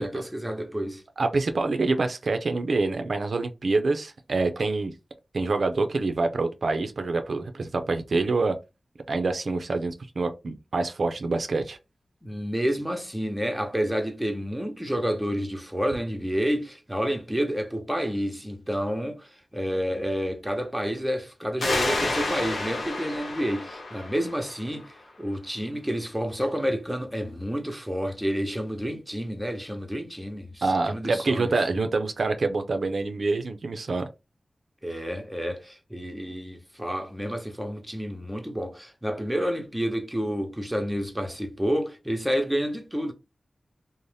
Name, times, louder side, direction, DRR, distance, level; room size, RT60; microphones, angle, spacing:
voice 1, 0.0-1.0 12.2-31.5 34.8-43.1, equal, 5° right, 0.8 m, -29 dB
voice 2, 1.2-4.9 5.3-8.6 9.1-11.8 30.6-34.1, right 3 dB, 75° right, 0.4 m, -26 dB
sound 1, 21.6-25.0, left 2 dB, 90° left, 0.8 m, -30 dB
2.6 x 2.0 x 3.2 m
cardioid pair, 45°, 0 cm